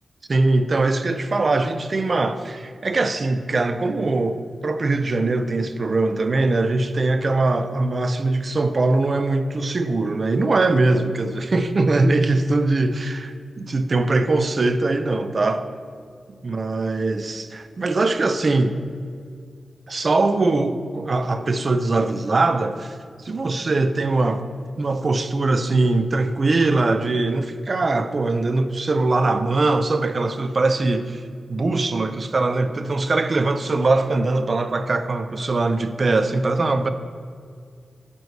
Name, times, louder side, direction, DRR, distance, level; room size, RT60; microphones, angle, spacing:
voice 1, 0.3-15.7 16.4-18.8 19.9-23.0 23.2-24.5 24.8-31.2 31.5-36.9, right 2 dB, 45° right, 0.5 m, -21 dB
9.4 x 3.2 x 6.5 m
wide cardioid pair, 115°, 0 cm